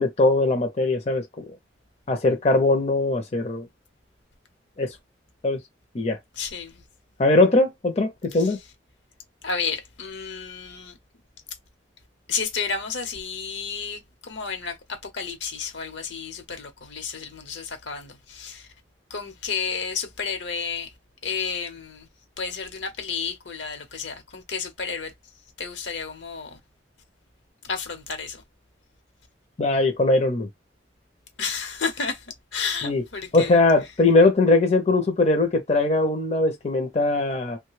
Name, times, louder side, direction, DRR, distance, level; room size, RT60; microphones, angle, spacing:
voice 1, 0.0-1.4 2.1-3.7 4.8-5.0 5.4-5.6 5.9-6.2 7.2-8.6 29.6-30.5 32.8-33.0 33.3-37.6, left 2 dB, 35° left, 0.6 m, -20 dB
voice 2, 6.4-6.8 9.4-10.9 12.3-14.0 14.3-18.6 19.1-20.9 21.2-22.1 22.4-25.1 25.6-26.6 27.7-28.4 31.4-32.2 32.5-33.5, left 5 dB, 75° left, 0.9 m, -31 dB
3.1 x 2.2 x 3.1 m
head